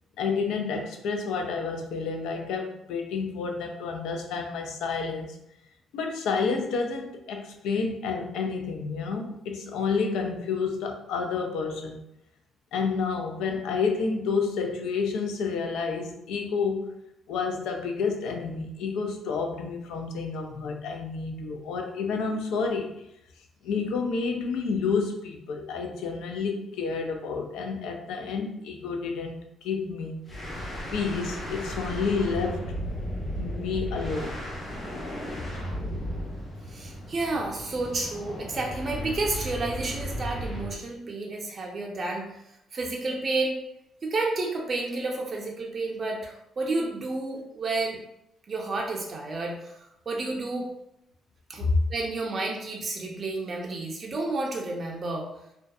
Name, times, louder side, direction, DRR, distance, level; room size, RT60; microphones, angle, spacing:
voice 1, 0.2-5.3 5.9-12.0 12.7-16.9 17.3-22.9 23.6-30.2 30.9-32.8 33.3-34.4 51.7-51.8, left 5 dB, 90° left, 4 dB, 0.4 m, -29 dB
sound 1, 30.3-40.8, equal, 30° left, 1.2 m, -35 dB
voice 2, 36.7-42.4 42.7-43.6 44.0-48.0 48.5-50.7 51.5-55.3, right 2 dB, 40° right, 0 dB, 0.4 m, -31 dB
2.5 x 2.2 x 2.3 m, 0.81 s
cardioid pair, 90°, 0 cm